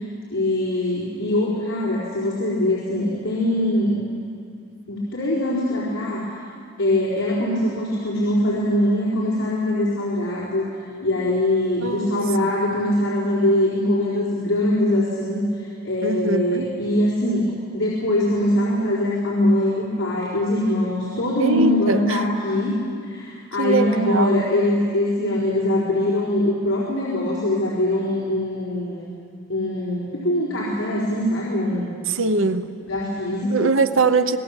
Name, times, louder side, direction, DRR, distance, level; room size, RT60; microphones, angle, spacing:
voice 1, 0.3-4.0 4.9-6.3 6.8-10.7 11.0-17.4 17.7-22.7 23.0-29.1 29.5-31.9 32.9-33.7, left 1 dB, 60° left, -6 dB, 4.4 m, -22 dB
voice 2, 11.8-12.2 16.0-16.7 21.4-22.3 23.6-24.5 32.1-32.7 33.5-34.4, right 4 dB, 65° right, 10 dB, 0.8 m, -22 dB
26.0 x 19.5 x 7.3 m, 2.3 s
head